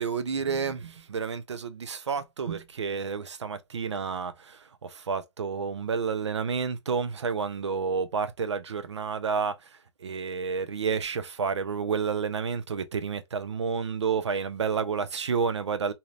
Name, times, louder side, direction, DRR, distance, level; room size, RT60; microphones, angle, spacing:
voice 1, 0.0-15.9, right 5 dB, 80° right, 0.6 m, -30 dB
2.8 x 2.5 x 3.2 m
hypercardioid pair, 180°, 15 cm